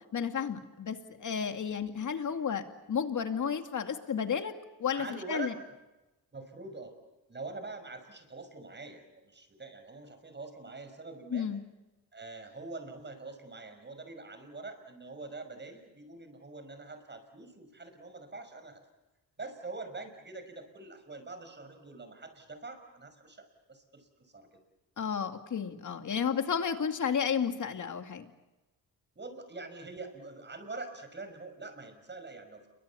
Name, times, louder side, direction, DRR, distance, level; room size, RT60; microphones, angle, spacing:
voice 1, 0.1-4.5 4.8-5.5 11.3-11.6 25.0-28.3, left 7 dB, 50° left, 6 dB, 2.4 m, -32 dB
voice 2, 4.9-5.7 6.3-6.9 7.3-11.5 12.1-18.8 19.4-24.6 29.2-32.7, right 3 dB, 25° right, 8 dB, 5.9 m, -44 dB
29.5 x 23.0 x 7.1 m, 1.0 s
cardioid pair, 90°, 39 cm